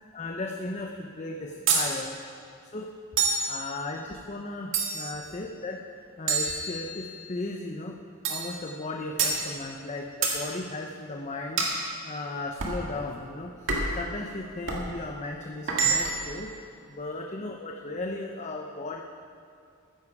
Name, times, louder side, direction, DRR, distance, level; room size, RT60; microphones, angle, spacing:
voice 1, 0.0-2.2 2.7-2.9 3.5-7.9 8.3-11.7 12.0-19.0, left 2 dB, 35° left, 1 dB, 0.7 m, -36 dB
sound 1, 1.7-1.9 3.2-3.5 4.7-5.2 6.3-7.2 8.2-8.5 9.2-9.4 10.2-10.4 11.6-11.8 12.6-12.8 13.7-14.0 14.7-14.9 15.7-16.3, right 4 dB, 65° right, 2.0 m, -27 dB
15.0 x 10.0 x 4.8 m, 2.5 s
head